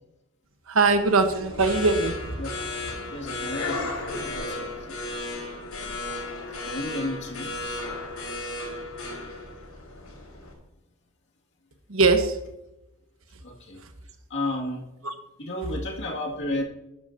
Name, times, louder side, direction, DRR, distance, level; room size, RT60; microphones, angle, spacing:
voice 1, 0.7-2.2 11.9-12.4 15.0-15.1, right 3 dB, 70° right, 7 dB, 1.2 m, -21 dB
sound 1, 0.9-10.5, left 2 dB, 85° left, 4.6 m, -34 dB
voice 2, 3.1-5.0 6.6-7.5 13.4-13.8 14.3-14.9 15.4-16.6, left 1 dB, 55° left, -1 dB, 2.3 m, -32 dB
12.5 x 10.5 x 2.8 m, 0.91 s
head